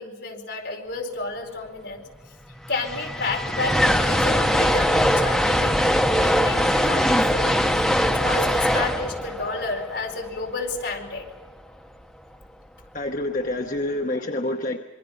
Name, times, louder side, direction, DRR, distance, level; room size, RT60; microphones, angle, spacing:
voice 1, 0.0-2.0 2.7-7.6 8.0-11.2, left 3 dB, 60° left, 0 dB, 4.5 m, -31 dB
sound 1, 2.2-2.3 2.5-10.7, equal, ahead, 1.0 m, -22 dB
voice 2, 12.9-14.8, left 1 dB, 40° left, 4 dB, 1.1 m, -27 dB
27.0 x 23.5 x 5.4 m, 1.3 s
head